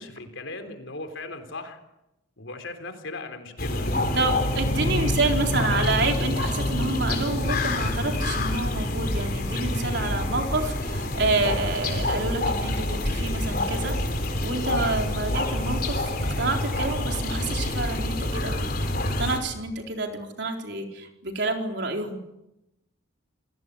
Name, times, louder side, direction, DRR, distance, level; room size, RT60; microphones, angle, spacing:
voice 1, 0.0-1.8 2.4-4.3 4.8-5.3 5.7-6.1, left 2 dB, 70° left, 7 dB, 3.7 m, -38 dB
sound 1, 3.6-19.4, left 1 dB, 45° left, 4.2 m, -27 dB
voice 2, 4.1-14.0 14.4-18.9 19.2-22.2, right 3 dB, 55° right, 3 dB, 4.2 m, -28 dB
28.5 x 18.5 x 8.2 m, 0.91 s
head